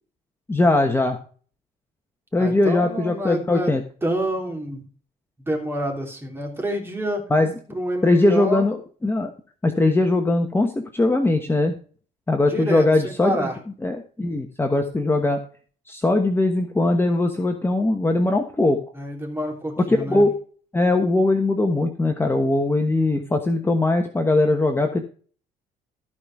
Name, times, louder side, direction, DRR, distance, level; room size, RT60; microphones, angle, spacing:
voice 1, 0.5-1.2 2.3-3.8 7.3-7.5 8.0-9.3 9.6-11.7 12.3-13.5 13.8-15.4 15.9-18.8 19.9-20.3 20.7-25.1, left 2 dB, 15° left, 5 dB, 1.2 m, -20 dB
voice 2, 2.4-3.7 4.0-4.9 5.5-7.2 7.7-8.7 12.5-13.6 19.0-20.3, right 1 dB, 15° right, 2 dB, 3.3 m, -27 dB
14.0 x 5.2 x 6.0 m, 0.41 s
cardioid pair, 110°, 17 cm